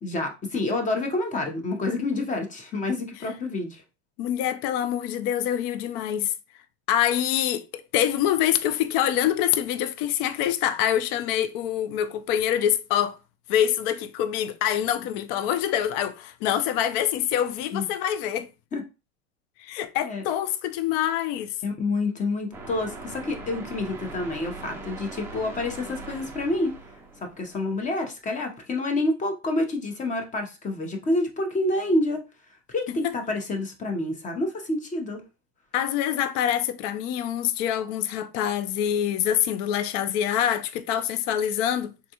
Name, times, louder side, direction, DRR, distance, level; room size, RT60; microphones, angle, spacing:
voice 1, 0.0-3.8 17.7-17.8 18.7-18.8 20.0-20.2 21.6-26.7 27.2-32.2 32.7-35.2, left 2 dB, 20° left, 0.7 m, -28 dB
voice 2, 4.2-6.3 6.9-13.2 13.5-18.5 19.6-21.5 32.9-33.1 35.7-41.9, left 10 dB, 60° left, 0.5 m, -25 dB
sound 1, 22.5-28.0, right 3 dB, 5° right, 0.4 m, -41 dB
3.6 x 2.2 x 2.8 m
supercardioid pair, 125°, 34 cm